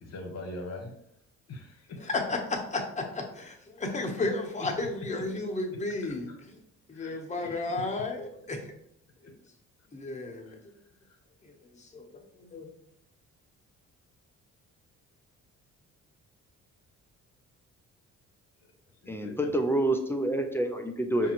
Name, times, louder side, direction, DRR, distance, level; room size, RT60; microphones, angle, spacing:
voice 1, 0.0-0.9 1.5-2.0 4.6-4.7 6.0-6.4 6.9-7.6 9.2-9.3 10.5-10.6 18.6-18.7 19.0-19.5 21.2-21.3, left 2 dB, 60° left, 3 dB, 1.0 m, -43 dB
voice 2, 2.0-6.6 6.9-8.7 9.9-10.6 11.4-12.7, left 2 dB, 25° left, 2 dB, 0.9 m, -33 dB
voice 3, 19.1-21.3, right 1 dB, 10° left, 4 dB, 0.5 m, -28 dB
5.2 x 2.6 x 2.9 m, 0.72 s
cardioid pair, 90°, 30 cm